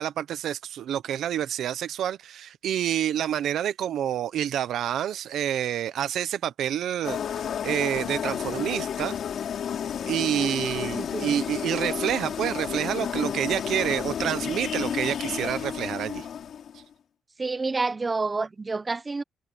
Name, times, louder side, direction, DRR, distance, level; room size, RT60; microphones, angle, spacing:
voice 1, 0.0-9.2 10.1-16.3, right 10 dB, 75° right, 1.0 m, -28 dB
sound 1, 7.0-16.8, left 8 dB, 60° left, 3.1 m, -31 dB
voice 2, 11.0-11.4 17.4-19.2, right 3 dB, 25° right, 1.1 m, -28 dB
cardioid pair, 90°, 0 cm